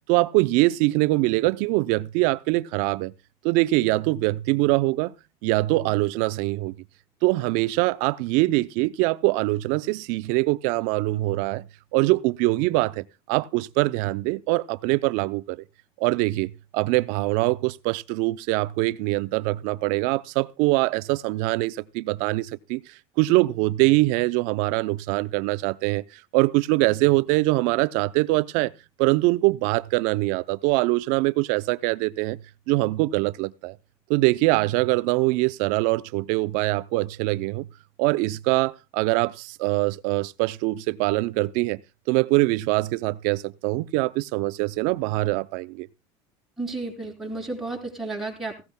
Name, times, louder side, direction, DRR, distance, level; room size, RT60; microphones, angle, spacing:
voice 1, 0.1-3.1 3.4-5.1 5.4-6.8 7.2-11.7 11.9-15.6 16.0-22.8 23.2-28.7 29.0-32.4 32.7-33.8 34.1-37.7 38.0-41.8 42.1-45.9, right 21 dB, 70° right, 0.5 m, -23 dB
voice 2, 46.6-48.6, right 2 dB, ahead, 3.8 m, -32 dB
17.5 x 15.5 x 2.2 m
cardioid pair, 155°, 14 cm